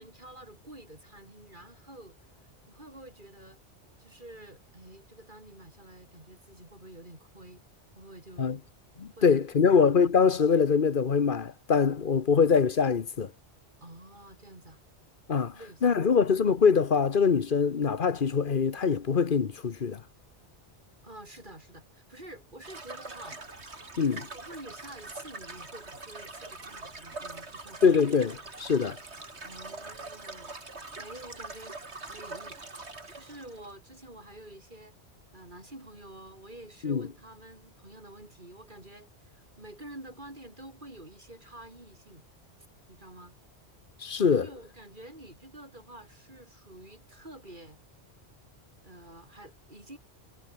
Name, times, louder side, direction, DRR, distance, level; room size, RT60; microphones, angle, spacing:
voice 1, 0.0-3.6 4.0-7.6 7.9-8.7 9.2-9.5 13.8-14.8 15.5-16.2 21.0-23.4 24.0-27.9 29.4-31.8 32.1-32.6 33.1-35.0 35.3-42.2 42.9-43.4 44.4-47.8 48.8-50.0, right 1 dB, 45° right, 6.1 m, -49 dB
voice 2, 9.0-13.3 15.3-15.6 15.8-20.0 24.0-24.3 27.8-29.0 36.8-37.1 44.0-44.5, left 6 dB, 50° left, 1.2 m, -24 dB
sound 1, 22.6-33.7, right 3 dB, 70° right, 3.4 m, -43 dB
omnidirectional pair, 1.2 m